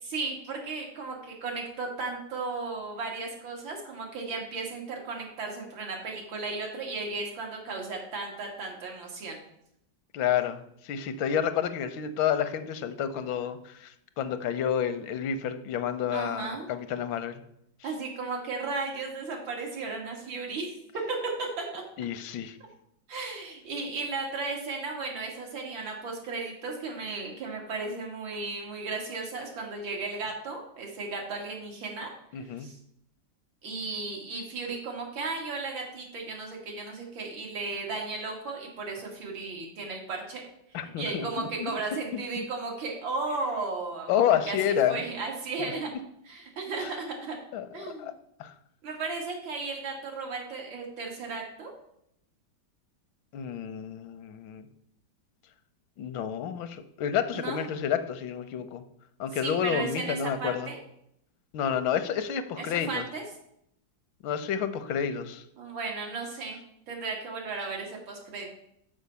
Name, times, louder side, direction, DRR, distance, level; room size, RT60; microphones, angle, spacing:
voice 1, 0.0-9.4 16.1-16.7 17.8-20.8 21.1-21.8 23.1-32.8 33.6-40.4 40.7-45.9 46.3-47.4 47.7-48.1 48.8-51.7 57.3-57.6 59.3-60.8 62.6-63.2 65.6-66.6 66.9-68.5, right 3 dB, 85° right, 0 dB, 2.4 m, -35 dB
voice 2, 10.1-17.4 22.0-22.6 32.3-32.7 40.7-41.7 42.1-42.5 44.1-45.0 46.8-46.9 47.5-48.1 48.4-48.5 53.3-54.7 56.0-58.8 59.2-60.7 61.5-63.0 64.2-65.4, left 8 dB, 85° left, 11 dB, 1.4 m, -30 dB
6.2 x 5.0 x 6.7 m, 0.75 s
omnidirectional pair, 2.1 m